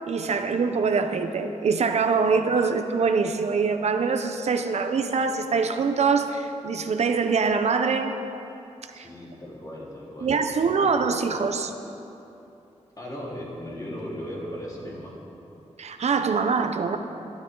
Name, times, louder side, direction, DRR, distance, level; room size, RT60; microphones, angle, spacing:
voice 1, 0.1-8.2 8.9-9.1 10.2-11.7 15.8-17.0, right 5 dB, 65° right, 7 dB, 0.8 m, -24 dB
voice 2, 8.9-10.4 10.8-10.9 13.0-15.2, equal, 30° left, -6 dB, 4.2 m, -37 dB
25.0 x 12.0 x 3.9 m, 2.9 s
wide cardioid pair, 130°, 12 cm